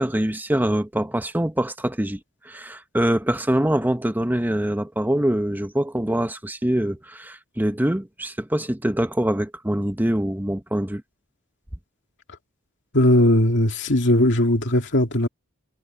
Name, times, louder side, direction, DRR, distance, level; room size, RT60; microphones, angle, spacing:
voice 1, 0.0-11.0, right 1 dB, 10° right, 1.0 m, -24 dB
voice 2, 12.9-15.3, left 1 dB, 60° left, 2.3 m, -18 dB
head